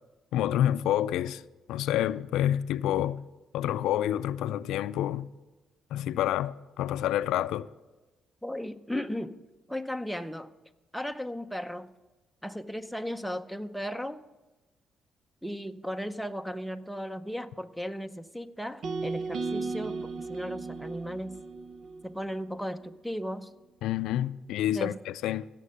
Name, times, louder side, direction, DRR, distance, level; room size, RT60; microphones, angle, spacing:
voice 1, 0.3-1.4 1.7-3.2 3.5-5.3 5.9-7.7 23.8-25.5, left 12 dB, 90° left, 0.4 m, -28 dB
voice 2, 8.4-9.4 9.7-10.5 10.9-11.9 12.4-14.2 15.4-21.4 22.0-23.5 24.7-25.0, equal, ahead, 0.7 m, -36 dB
sound 1, 18.8-23.0, right 4 dB, 65° right, 0.8 m, -36 dB
16.5 x 7.5 x 6.6 m
cardioid pair, 90°, 0 cm